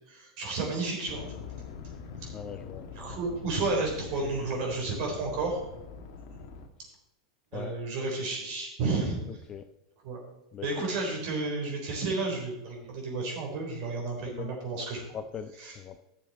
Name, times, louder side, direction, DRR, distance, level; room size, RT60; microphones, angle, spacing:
voice 1, 0.1-1.3 2.9-5.6 7.5-9.2 10.0-10.2 10.6-15.0 15.6-15.7, right 3 dB, 45° right, 0 dB, 3.8 m, -31 dB
sound 1, 1.1-6.7, left 6 dB, 50° left, 1.4 m, -44 dB
voice 2, 2.3-2.9 7.5-7.8 9.5-9.7 10.5-10.7 14.3-14.5 15.1-16.0, left 7 dB, 20° left, 9 dB, 0.4 m, -40 dB
13.5 x 7.1 x 4.2 m, 0.92 s
supercardioid pair, 165°, 3 cm